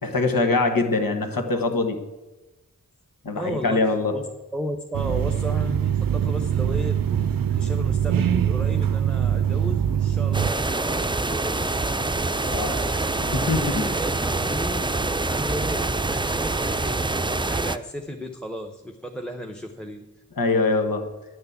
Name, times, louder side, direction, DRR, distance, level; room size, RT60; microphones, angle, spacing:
voice 1, 0.0-2.0 3.2-4.1 12.5-12.8 13.2-13.9 20.4-21.0, left 3 dB, 85° left, 5 dB, 1.4 m, -23 dB
voice 2, 3.3-4.2 4.5-11.7 12.3-20.1, equal, 5° left, 4 dB, 0.9 m, -35 dB
sound 1, 4.9-10.5, right 9 dB, 80° right, 0.5 m, -23 dB
sound 2, 10.3-17.8, right 2 dB, 15° right, 0.5 m, -25 dB
10.5 x 6.7 x 8.2 m, 1.1 s
wide cardioid pair, 60°, 33 cm